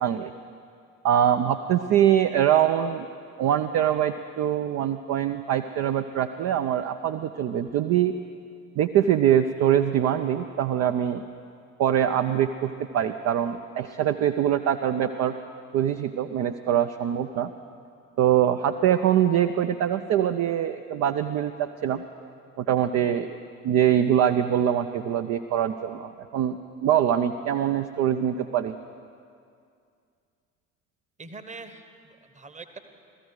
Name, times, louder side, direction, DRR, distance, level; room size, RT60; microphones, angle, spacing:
voice 1, 0.0-0.3 1.0-3.1 3.4-8.1 8.8-11.2 11.8-15.3 15.7-17.5 18.2-22.0 22.6-23.4 23.6-28.7, right 10 dB, 40° right, 8 dB, 0.5 m, -23 dB
voice 2, 31.2-32.8, right 3 dB, 15° right, 9 dB, 1.0 m, -43 dB
16.0 x 14.0 x 4.8 m, 2.3 s
figure-of-eight pair, 55°, 43 cm